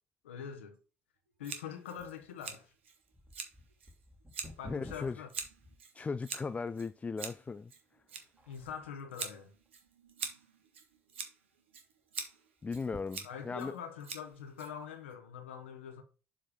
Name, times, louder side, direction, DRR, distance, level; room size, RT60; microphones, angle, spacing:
voice 1, 0.2-0.8 1.4-2.7 4.6-5.3 8.5-9.5 13.2-16.0, left 7 dB, 85° left, 0.9 m, -44 dB
Scissors, 1.4-15.1, right 6 dB, 85° right, 1.0 m, -46 dB
sound 1, 2.0-6.4 7.0-7.1 7.8-8.1 8.4-9.0 9.6-10.3 10.6-10.7 11.0-11.1 12.6-13.7 14.3-14.4, left 1 dB, 20° right, 2.1 m, -54 dB
voice 2, 4.7-5.2 5.9-7.7 12.6-13.7, left 4 dB, 20° left, 0.3 m, -37 dB
7.1 x 3.5 x 5.0 m
hypercardioid pair, 55°, 6 cm